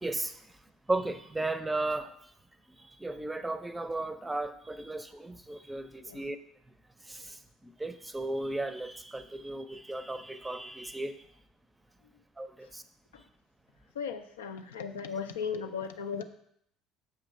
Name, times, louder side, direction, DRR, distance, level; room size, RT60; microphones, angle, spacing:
voice 1, 0.0-0.3 0.9-2.1 3.0-6.4 7.1-7.4 7.8-11.2 12.4-12.8, right 2 dB, 15° right, 11 dB, 0.6 m, -35 dB
voice 2, 13.9-16.2, left 6 dB, 80° left, 7 dB, 0.5 m, -36 dB
7.3 x 3.0 x 5.3 m, 0.70 s
figure-of-eight pair, 60°, 0 cm